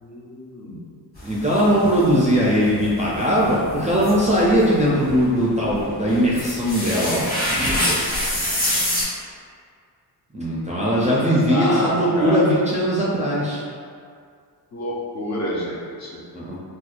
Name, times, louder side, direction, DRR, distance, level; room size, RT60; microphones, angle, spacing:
voice 1, 0.0-0.9 11.1-12.6 14.7-16.2, equal, 40° left, -4 dB, 0.6 m, -28 dB
sound 1, 1.2-9.0, left 1 dB, 20° left, 1.4 m, -27 dB
voice 2, 1.2-8.0 10.3-13.6 16.3-16.6, equal, 20° right, -7 dB, 0.3 m, -20 dB
4.2 x 2.3 x 2.4 m, 2.2 s
wide cardioid pair, 150°, 42 cm